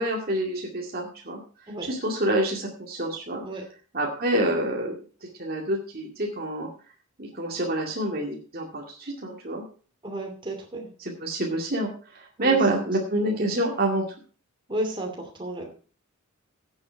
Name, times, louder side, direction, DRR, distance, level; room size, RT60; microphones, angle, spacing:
voice 1, 0.0-1.4 1.8-3.4 3.9-5.0 5.4-6.7 7.2-9.7 11.0-14.1, right 1 dB, 45° right, -1 dB, 2.3 m, -27 dB
voice 2, 10.0-10.9 12.4-12.6 14.7-15.7, right 1 dB, 25° right, 1 dB, 2.6 m, -32 dB
15.5 x 8.0 x 4.6 m, 0.39 s
head